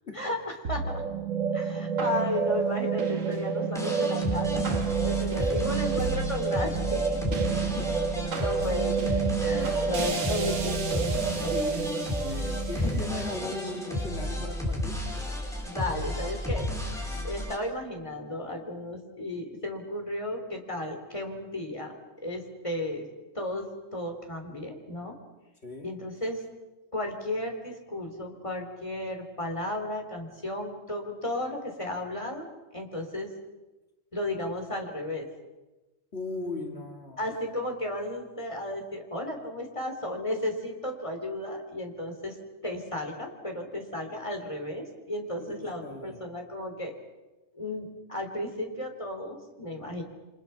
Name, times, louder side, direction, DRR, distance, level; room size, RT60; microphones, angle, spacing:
voice 1, 0.1-1.0 1.5-7.2 8.4-11.8 12.7-13.0 15.7-16.7 17.2-23.1 23.3-25.2 25.8-26.4 26.9-32.5 32.7-33.3 34.1-35.3 37.2-42.4 42.6-46.9 47.5-50.0, left 1 dB, 25° left, 3 dB, 3.6 m, -34 dB
sound 1, 0.6-15.1, right 6 dB, 90° right, 1.9 m, -29 dB
sound 2, 3.7-17.5, left 1 dB, ahead, 4.6 m, -33 dB
voice 2, 5.2-5.7 7.3-8.3 9.6-9.9 11.3-15.3 25.6-25.9 36.1-37.2 45.4-46.2, left 3 dB, 55° left, 3 dB, 2.4 m, -39 dB
29.0 x 25.5 x 5.8 m, 1.1 s
omnidirectional pair, 1.3 m